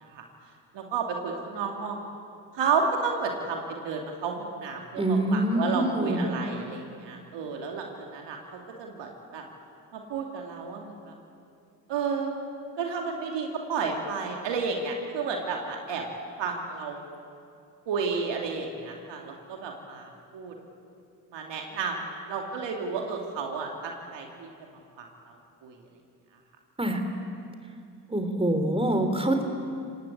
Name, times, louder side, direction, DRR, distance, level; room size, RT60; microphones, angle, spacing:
voice 1, 0.7-2.0 2.5-9.4 9.9-11.1 11.9-12.3 12.8-16.0 16.4-17.0 17.9-20.6 21.3-22.0 22.3-24.5 25.0-25.4 25.6-25.8, right 5 dB, 75° right, 2 dB, 2.7 m, -32 dB
voice 2, 5.0-6.3 26.8-27.0 28.1-29.4, right 1 dB, 15° right, 5 dB, 3.8 m, -25 dB
26.0 x 19.0 x 8.6 m, 2.4 s
hypercardioid pair, 45°, 44 cm